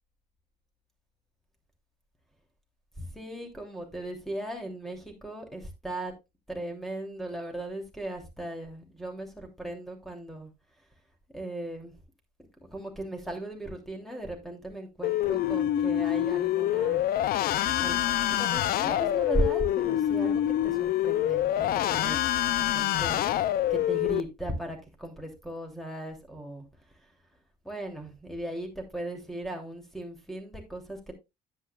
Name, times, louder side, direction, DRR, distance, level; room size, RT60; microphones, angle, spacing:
voice 1, 3.0-6.1 6.5-10.5 11.3-11.9 12.7-17.0 17.8-18.0 18.2-23.2 23.7-26.7 27.6-31.1, right 1 dB, ahead, 3 dB, 2.9 m, -37 dB
sound 1, 15.0-24.2, left 12 dB, 65° left, 0.5 m, -26 dB
10.0 x 8.9 x 2.4 m, 0.23 s
cardioid pair, 110°, 17 cm